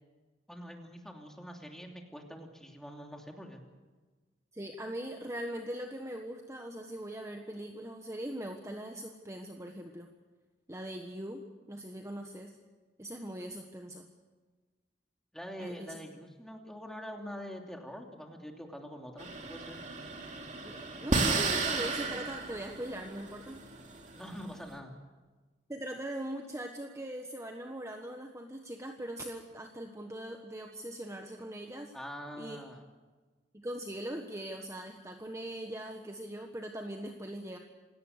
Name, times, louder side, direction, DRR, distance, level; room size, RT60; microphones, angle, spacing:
voice 1, 0.5-3.6 15.3-19.8 24.1-24.9 31.9-32.8, equal, 5° left, 2 dB, 2.9 m, -45 dB
voice 2, 4.5-10.1 10.7-12.6 13.0-14.1 15.6-16.0 20.6-23.6 25.7-31.9 32.4-32.6 33.5-37.6, right 1 dB, 15° right, 3 dB, 1.4 m, -41 dB
sound 1, 19.2-24.7, right 3 dB, 40° right, 2.7 m, -34 dB
27.5 x 18.0 x 6.7 m, 1.3 s
head